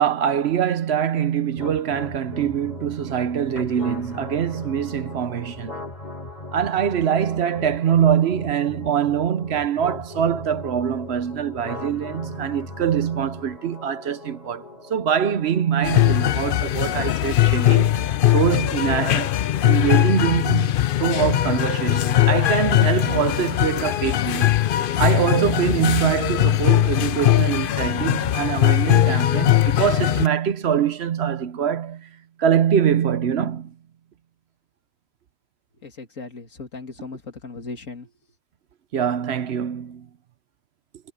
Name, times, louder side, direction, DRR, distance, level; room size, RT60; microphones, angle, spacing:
voice 1, 0.0-5.7 6.5-14.6 14.9-19.4 19.6-32.1 32.4-33.7 38.9-40.1, right 8 dB, 60° right, 0.9 m, -23 dB
sound 1, 1.6-17.6, left 2 dB, 35° left, 3.1 m, -39 dB
sound 2, 15.8-30.3, left 13 dB, 60° left, 0.6 m, -20 dB
voice 2, 35.7-38.1, left 4 dB, 90° left, 2.8 m, -37 dB
omnidirectional pair, 1.3 m